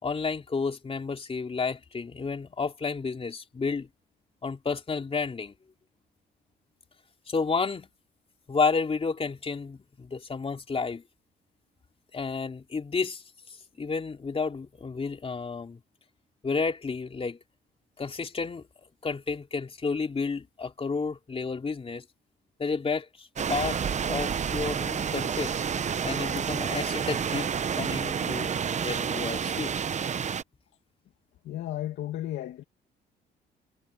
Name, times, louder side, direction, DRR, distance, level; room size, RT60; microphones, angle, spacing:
voice 1, 0.0-3.9 4.4-5.5 7.3-7.9 8.5-11.0 12.1-13.2 13.8-15.8 16.4-17.4 18.0-18.7 19.0-22.0 22.6-23.8 24.0-25.6 26.0-27.5 27.7-28.5 28.8-29.7, left 4 dB, 30° left, 3.2 m, -31 dB
sound 1, 23.4-30.4, right 7 dB, 40° right, 0.8 m, -29 dB
voice 2, 31.5-32.6, left 13 dB, 80° left, 2.3 m, -34 dB
cardioid pair, 95°, 19 cm